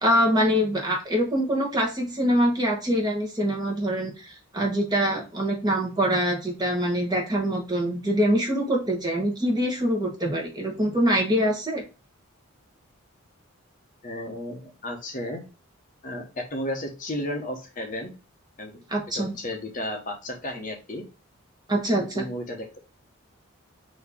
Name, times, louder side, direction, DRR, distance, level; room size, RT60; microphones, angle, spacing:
voice 1, 0.0-11.8 18.9-19.4 21.7-22.2, equal, 20° right, 0 dB, 1.1 m, -24 dB
voice 2, 14.0-15.4 16.0-18.1 18.6-18.8 19.1-21.0 22.0-22.8, left 1 dB, 40° left, 3 dB, 0.9 m, -33 dB
4.3 x 2.8 x 3.5 m, 0.30 s
head